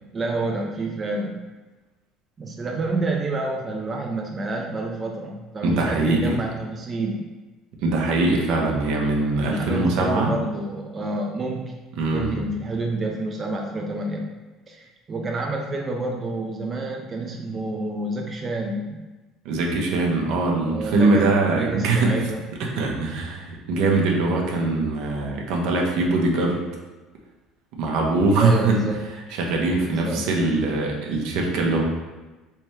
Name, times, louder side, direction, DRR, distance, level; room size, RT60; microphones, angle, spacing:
voice 1, 0.1-1.4 2.4-7.3 9.4-11.7 12.1-14.3 14.7-19.1 20.7-22.4 28.4-29.1 29.9-30.3, right 2 dB, 35° right, 1 dB, 0.4 m, -28 dB
voice 2, 5.6-6.4 7.8-10.3 12.0-12.4 19.4-22.2 22.6-26.6 27.7-28.8 29.1-31.8, right 2 dB, 70° right, 0 dB, 0.7 m, -22 dB
3.3 x 3.0 x 3.2 m, 1.2 s
hypercardioid pair, 75°, 0 cm